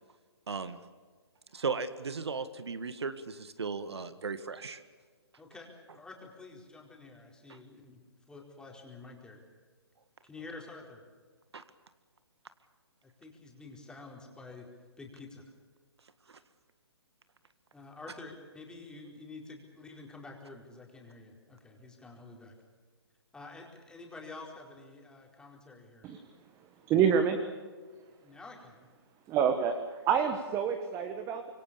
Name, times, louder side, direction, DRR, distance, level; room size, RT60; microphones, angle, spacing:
voice 1, 0.5-0.8 1.5-4.8 7.5-7.6 11.5-11.6 16.3-16.4, right 4 dB, 70° right, 11 dB, 1.8 m, -36 dB
voice 2, 5.4-8.0 8.3-9.4 10.2-11.0 13.2-14.7 15.0-15.4 17.7-22.5 23.3-26.1 28.2-28.9, left 3 dB, 5° left, 0 dB, 4.5 m, -49 dB
voice 3, 26.9-27.4 29.3-29.8 30.1-31.5, right 7 dB, 20° right, 7 dB, 1.6 m, -27 dB
26.0 x 23.5 x 7.0 m, 1.5 s
figure-of-eight pair, 135°, 14 cm